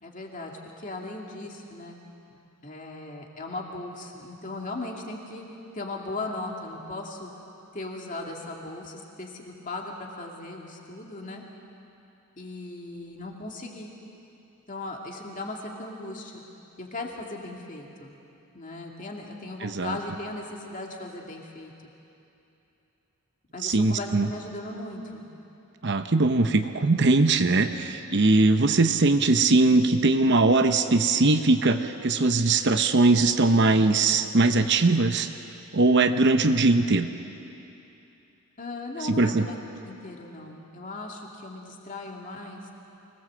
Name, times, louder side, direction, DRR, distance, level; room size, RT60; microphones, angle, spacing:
voice 1, 0.0-2.0 2.6-5.4 5.7-7.3 7.7-11.4 12.4-13.9 14.7-16.4 16.8-18.1 18.5-21.7 23.5-25.3 38.6-42.6, left 2 dB, 35° left, 0 dB, 2.4 m, -37 dB
voice 2, 19.6-20.0 23.6-24.3 25.8-35.3 35.7-37.1 39.0-39.5, right 3 dB, 50° right, 8 dB, 0.8 m, -21 dB
24.5 x 18.5 x 7.8 m, 2.8 s
head